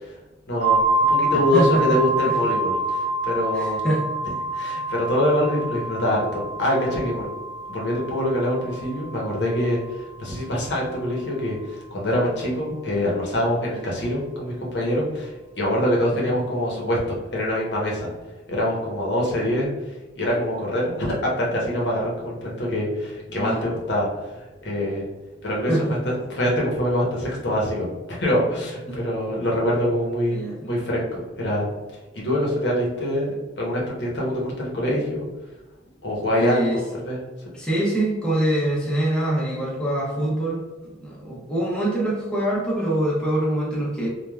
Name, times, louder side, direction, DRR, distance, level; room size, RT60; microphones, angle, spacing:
voice 1, 0.5-0.8 1.1-3.8 4.5-7.3 7.7-18.1 18.5-19.7 20.2-25.0 25.4-31.7 32.1-35.2 36.0-36.7 37.0-37.2, left 1 dB, 75° left, -3 dB, 0.8 m, -24 dB
sound 1, 0.6-10.2, right 2 dB, 75° right, 0.7 m, -26 dB
voice 2, 1.5-2.0 2.2-2.4 3.5-4.0 16.1-16.3 23.3-23.6 25.7-26.2 28.9-29.0 30.3-30.7 32.3-32.4 36.4-36.8 37.5-44.1, right 1 dB, 5° left, -6 dB, 0.5 m, -24 dB
3.2 x 2.2 x 2.3 m, 1.1 s
head